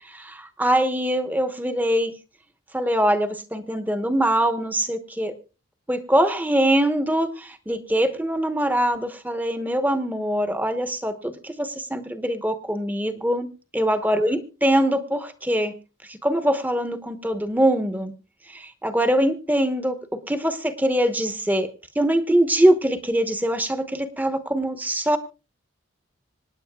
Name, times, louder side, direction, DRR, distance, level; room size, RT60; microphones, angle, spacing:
voice 1, 0.1-2.1 2.7-5.3 5.9-15.7 16.1-18.1 18.5-21.7 21.9-25.2, right 1 dB, 10° right, 9 dB, 1.0 m, -23 dB
26.0 x 9.9 x 2.3 m, 0.31 s
head